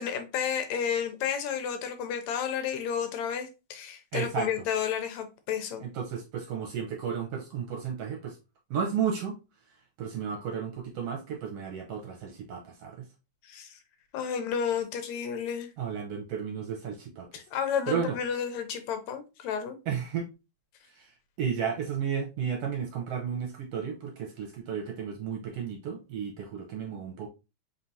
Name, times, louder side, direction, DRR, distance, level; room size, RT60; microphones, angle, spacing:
voice 1, 0.0-5.8 13.4-13.8 14.1-15.7 17.3-19.8, left 8 dB, 80° left, 1.9 m, -31 dB
voice 2, 4.1-4.5 5.8-8.4 8.7-9.4 10.0-13.0 15.8-17.3 17.9-18.2 19.9-20.3 20.9-21.1 21.4-27.3, right 7 dB, 75° right, 1.5 m, -33 dB
4.4 x 3.5 x 2.7 m
omnidirectional pair, 3.3 m